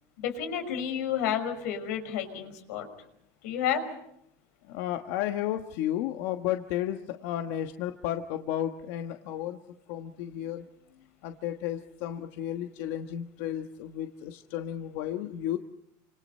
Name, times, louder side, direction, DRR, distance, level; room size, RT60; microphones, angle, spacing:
voice 1, 0.2-2.9 3.4-3.8, left 9 dB, 90° left, 7 dB, 5.8 m, -30 dB
voice 2, 4.7-9.6 9.9-10.7 11.2-15.6, left 11 dB, 60° left, 5 dB, 1.4 m, -33 dB
29.0 x 26.5 x 5.5 m, 0.75 s
cardioid pair, 165°, 8 cm